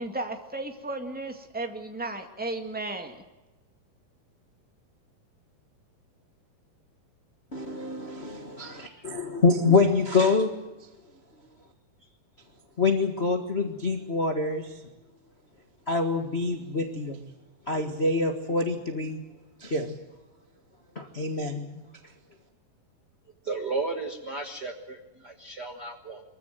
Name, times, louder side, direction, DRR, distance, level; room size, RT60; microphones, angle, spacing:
voice 1, 0.0-3.2, right 2 dB, 5° right, 4 dB, 1.1 m, -34 dB
voice 2, 7.5-10.5 12.8-14.7 15.9-17.3 17.7-19.2 19.6-19.9 20.9-21.8, left 3 dB, 45° left, 4 dB, 0.8 m, -26 dB
voice 3, 8.7-9.1 23.4-26.2, right 3 dB, 45° right, 4 dB, 1.3 m, -34 dB
24.0 x 15.0 x 9.3 m, 1.1 s
omnidirectional pair, 4.1 m